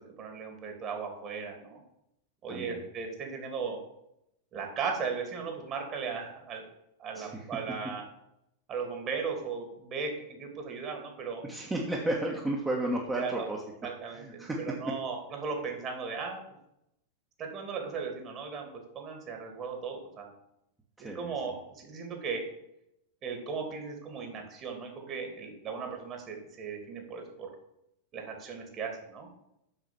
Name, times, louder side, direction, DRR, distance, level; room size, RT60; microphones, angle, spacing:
voice 1, 0.2-1.8 2.4-3.8 4.5-6.6 7.0-8.1 8.7-11.4 13.2-13.5 13.8-16.4 17.4-20.3 21.0-22.4 23.2-27.5 28.1-29.3, right 5 dB, 35° right, 3 dB, 2.5 m, -37 dB
voice 2, 2.5-2.8 7.1-7.5 11.4-13.6 14.1-14.6 21.0-21.3, right 1 dB, 10° right, -2 dB, 1.5 m, -33 dB
7.4 x 6.4 x 7.2 m, 0.82 s
figure-of-eight pair, 90°, 0 cm